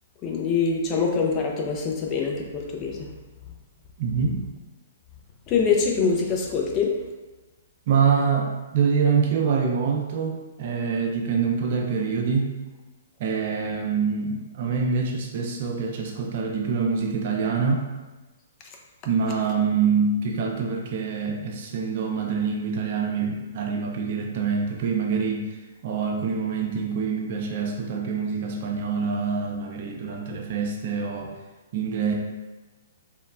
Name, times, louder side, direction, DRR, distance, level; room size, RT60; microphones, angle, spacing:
voice 1, 0.2-3.1 5.5-7.0, left 5 dB, 30° left, 0 dB, 0.5 m, -24 dB
voice 2, 4.0-4.4 7.9-12.5 13.2-17.9 19.0-25.4 25.8-31.4 31.7-32.1, right 5 dB, 50° right, 1 dB, 0.4 m, -25 dB
3.1 x 2.1 x 2.4 m, 1.2 s
figure-of-eight pair, 120°, 0 cm